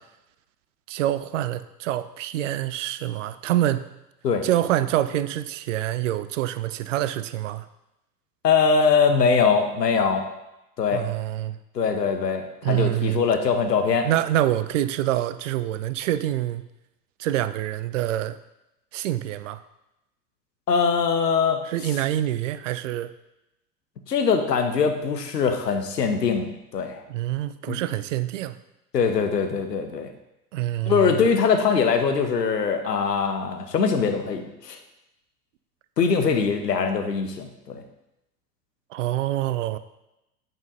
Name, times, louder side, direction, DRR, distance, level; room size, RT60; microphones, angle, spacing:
voice 1, 0.9-3.9 4.4-7.6 10.9-11.6 12.6-13.2 14.0-16.6 17.2-18.4 18.9-19.6 21.7-23.1 27.1-28.6 30.5-31.2 38.9-39.8, right 13 dB, 50° right, 14 dB, 0.5 m, -26 dB
voice 2, 8.4-10.3 10.8-11.0 11.7-14.1 20.7-21.6 24.1-27.0 27.7-27.8 28.9-30.1 30.9-34.8 36.0-37.8, left 5 dB, 75° left, 6 dB, 0.9 m, -22 dB
8.9 x 5.4 x 2.6 m, 0.91 s
figure-of-eight pair, 90°, 49 cm